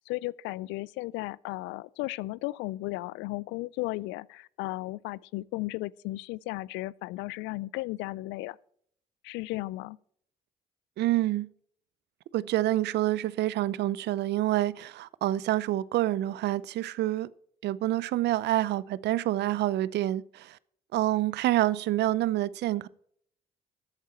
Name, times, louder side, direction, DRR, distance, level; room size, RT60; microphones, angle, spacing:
voice 1, 0.1-8.6 9.2-10.0, left 19 dB, 70° left, 0.4 m, -35 dB
voice 2, 11.0-11.5 12.3-17.3 17.6-20.6 20.9-22.9, right 14 dB, 60° right, 0.6 m, -27 dB
13.5 x 8.2 x 4.3 m
hypercardioid pair, 50°, 19 cm